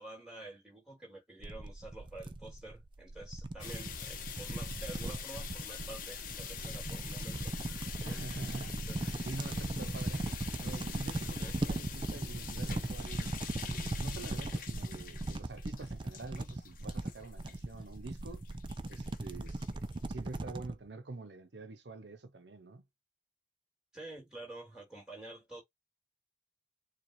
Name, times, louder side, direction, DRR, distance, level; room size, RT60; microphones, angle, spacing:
voice 1, 0.0-8.3 8.7-9.0 11.4-11.5 14.0-14.3 23.9-25.6, right 2 dB, 5° right, 2.9 m, -49 dB
thrashing rubling bubble tea balls, 1.4-20.7, right 2 dB, 25° right, 0.4 m, -38 dB
sound 1, 3.6-20.5, left 8 dB, 45° left, 0.8 m, -46 dB
voice 2, 8.0-13.3 13.6-18.4 18.9-22.8, right 3 dB, 60° right, 0.7 m, -47 dB
6.8 x 2.4 x 3.0 m
head